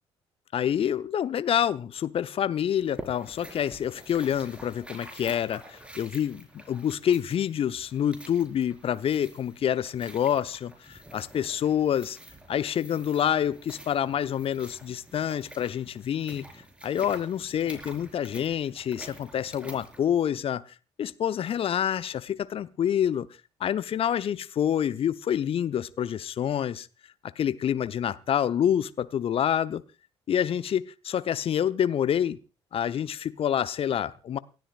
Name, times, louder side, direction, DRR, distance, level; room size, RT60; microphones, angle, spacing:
voice 1, 0.5-12.2 12.5-16.4 16.8-20.6 21.0-23.3 23.6-26.9 27.4-29.8 30.3-32.4 32.7-34.4, left 9 dB, 40° left, 0.8 m, -27 dB
sound 1, 2.8-20.0, right 1 dB, 10° right, 4.8 m, -47 dB
28.5 x 12.5 x 2.4 m
figure-of-eight pair, 50°, 14 cm